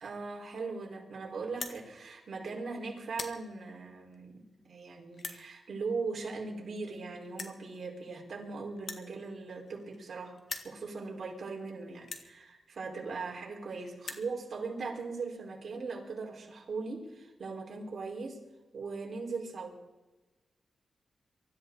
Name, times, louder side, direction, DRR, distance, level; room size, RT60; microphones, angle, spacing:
voice 1, 0.0-10.4 10.6-18.4 18.7-19.8, right 4 dB, 60° right, -1 dB, 4.9 m, -39 dB
sound 1, 1.5-1.8 2.5-2.7 3.0-3.4 4.1-4.2 5.1-5.4 6.5-6.6 6.8-6.9 7.3-7.6 8.8-10.1 10.4-10.7 11.4-11.5 12.0-12.3 13.2-13.3 13.5-13.6 13.9-14.3, left 4 dB, 55° left, 1.8 m, -41 dB
24.0 x 14.5 x 4.1 m, 1.1 s
cardioid pair, 95°, 0 cm